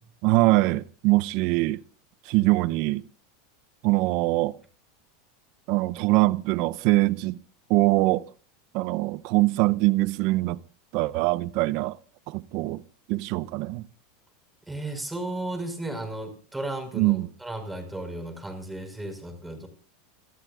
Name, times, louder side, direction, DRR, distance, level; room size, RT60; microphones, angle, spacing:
voice 1, 0.2-1.8 2.2-3.0 3.8-4.6 5.7-7.4 7.7-8.3 8.7-10.6 10.9-12.0 12.3-12.8 13.1-13.9 16.9-17.3, right 20 dB, 60° right, 0.6 m, -23 dB
voice 2, 14.7-19.7, right 2 dB, 5° right, 5.3 m, -34 dB
29.5 x 14.0 x 2.5 m
hypercardioid pair, 110°, 0 cm